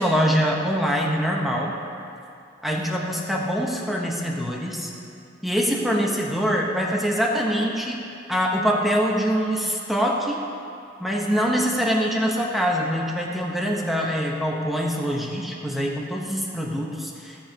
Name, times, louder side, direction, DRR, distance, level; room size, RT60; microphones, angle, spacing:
voice 1, 0.0-1.8 2.6-4.9 5.4-8.0 8.3-10.4 11.0-17.4, equal, ahead, -2 dB, 1.0 m, -24 dB
16.5 x 7.4 x 2.9 m, 2.5 s
head